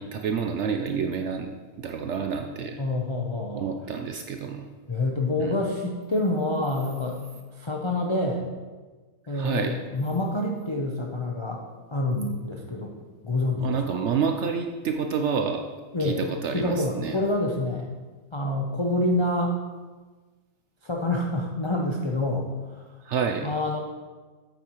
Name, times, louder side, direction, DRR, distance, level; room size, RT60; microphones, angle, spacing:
voice 1, 0.0-1.5 1.8-2.8 3.5-4.6 5.4-5.5 9.3-9.8 13.6-15.6 16.0-17.2 23.0-23.5, right 6 dB, 65° right, 5 dB, 0.7 m, -28 dB
voice 2, 2.8-3.7 4.9-7.2 7.5-8.5 9.3-11.6 11.9-13.0 13.2-14.0 15.9-16.2 16.5-17.9 18.3-19.5 20.8-22.5 22.7-22.8 23.4-23.8, left 2 dB, 45° left, 0 dB, 0.3 m, -27 dB
8.4 x 8.0 x 3.0 m, 1.3 s
omnidirectional pair, 1.6 m